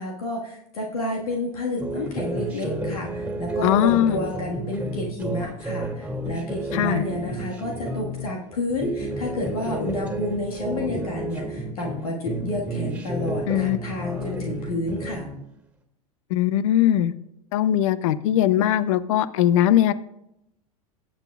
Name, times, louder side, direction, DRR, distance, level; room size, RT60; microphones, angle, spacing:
voice 1, 0.0-15.3, left 2 dB, 80° left, -1 dB, 1.6 m, -30 dB
sound 1, 1.8-8.3 8.7-12.0 12.3-15.4, right 2 dB, 5° right, 2.0 m, -31 dB
voice 2, 3.6-4.2 6.7-7.0 13.5-13.8 16.3-17.1 17.5-19.9, left 12 dB, 60° left, 16 dB, 0.6 m, -20 dB
16.5 x 7.2 x 2.4 m, 0.82 s
hypercardioid pair, 85°, 19 cm